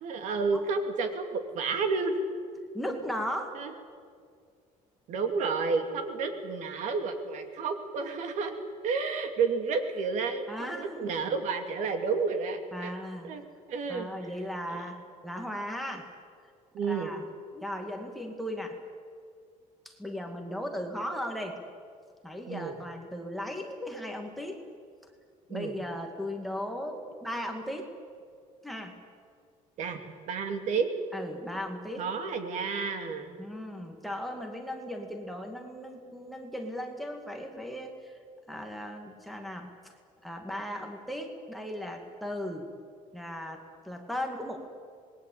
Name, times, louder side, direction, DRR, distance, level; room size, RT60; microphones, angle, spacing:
voice 1, 0.0-2.2 3.5-3.7 5.1-8.6 8.8-12.9 13.2-13.4 13.7-14.1 14.7-14.8 16.7-17.1 22.5-22.8 25.5-25.8 29.8-30.0 30.3-30.9 32.0-33.3, right 4 dB, 60° right, 6 dB, 2.7 m, -31 dB
voice 2, 2.7-3.5 10.5-11.1 12.7-13.4 13.9-15.0 15.2-16.1 16.8-17.2 17.5-18.8 19.9-21.6 22.2-24.6 25.5-27.9 28.6-29.0 31.1-32.1 33.4-38.2 38.5-39.9 40.2-42.7 43.1-44.6, equal, ahead, 3 dB, 2.2 m, -37 dB
26.5 x 21.0 x 8.7 m, 2.1 s
cardioid pair, 170°, 14 cm